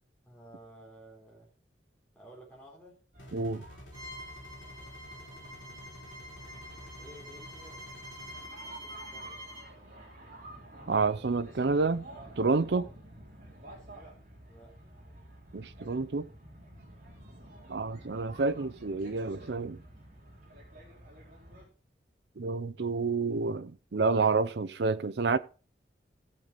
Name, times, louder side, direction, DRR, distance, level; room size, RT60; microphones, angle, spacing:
voice 1, 0.3-1.5 2.1-3.0 7.0-7.8 8.6-9.4 14.5-14.8, right 1 dB, 10° left, 3.9 m, -53 dB
sound 1, 3.1-21.7, right 1 dB, 45° right, 4.2 m, -51 dB
sound 2, 3.2-8.5, left 1 dB, 80° left, 3.2 m, -51 dB
voice 2, 3.3-3.6 10.9-12.0 12.4-12.9 15.5-16.3 17.7-19.8 22.4-25.4, right 4 dB, 65° right, 0.6 m, -29 dB
Bowed string instrument, 3.9-9.7, equal, 20° right, 3.3 m, -47 dB
16.0 x 6.8 x 3.9 m
head